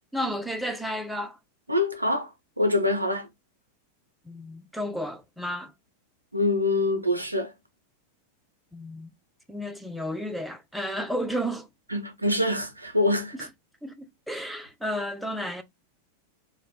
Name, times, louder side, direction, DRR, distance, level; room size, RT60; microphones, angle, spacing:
voice 1, 0.1-1.4 4.3-5.7 8.7-9.1 9.5-11.7 13.3-13.4 13.8-15.6, equal, ahead, 0.5 m, -32 dB
voice 2, 1.7-2.3 2.6-3.3 6.3-7.5 11.9-13.5, left 2 dB, 85° right, 0.5 m, -25 dB
2.2 x 2.0 x 3.6 m
figure-of-eight pair, 90°, 0 cm